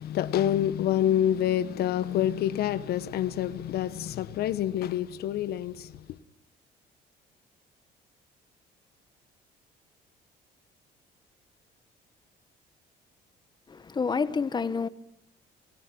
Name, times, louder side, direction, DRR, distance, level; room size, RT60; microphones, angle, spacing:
voice 1, 0.0-5.9, left 11 dB, 70° left, 1.1 m, -27 dB
voice 2, 13.7-14.9, left 5 dB, 25° left, 1.2 m, -28 dB
28.0 x 16.0 x 6.1 m
cardioid pair, 110°, 17 cm